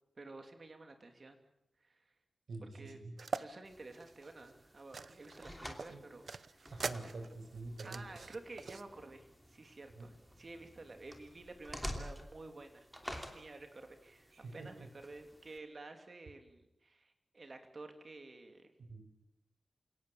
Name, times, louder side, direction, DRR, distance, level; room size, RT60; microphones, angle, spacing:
voice 1, 0.2-1.4 1.8-2.0 2.6-3.0 3.4-6.7 7.0-7.1 7.8-12.9 13.3-18.7, right 2 dB, 35° right, 6 dB, 2.8 m, -51 dB
voice 2, 2.5-3.1 5.8-6.0 6.7-8.0 10.0-10.1 14.3-14.9 18.9-19.0, right 3 dB, 90° right, 5 dB, 5.7 m, -46 dB
sound 1, 3.2-3.5 3.9-5.5 5.8-8.8, right 4 dB, 50° right, 0.9 m, -43 dB
sound 2, 3.6-15.6, equal, ahead, 2.9 m, -50 dB
28.0 x 18.5 x 8.6 m, 0.88 s
wide cardioid pair, 165°, 0 cm